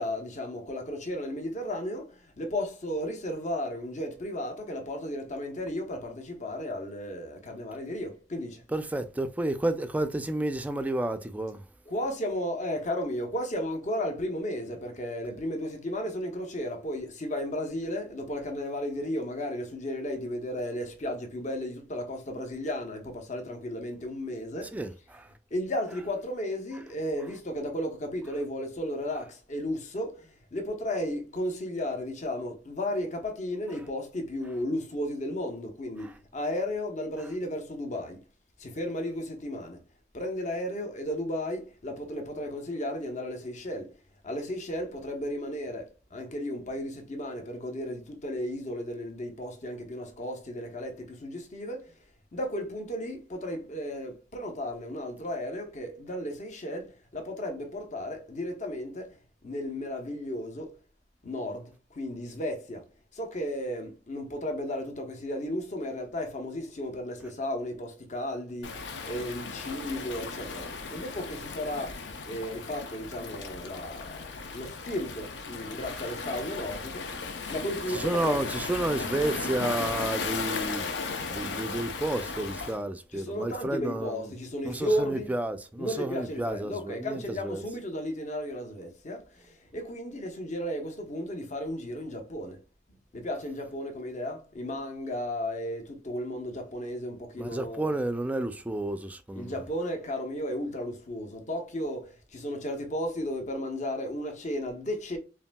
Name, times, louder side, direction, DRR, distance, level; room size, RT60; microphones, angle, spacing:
voice 1, 0.0-8.6 11.9-24.8 25.5-38.2 38.6-39.8 40.1-43.9 44.2-52.0 52.3-59.2 59.4-60.8 61.2-62.8 63.1-77.1 77.5-78.4 83.1-85.3 85.8-92.6 93.1-97.9 99.3-105.2, left 1 dB, 45° left, 0.8 m, -34 dB
voice 2, 8.7-11.6 24.7-25.3 36.0-36.1 77.9-80.9 81.3-84.3 84.6-87.6 97.4-99.6, right 1 dB, 10° right, 0.4 m, -31 dB
Waves surf, 68.6-82.8, left 4 dB, 90° left, 0.6 m, -36 dB
5.5 x 2.6 x 2.2 m
head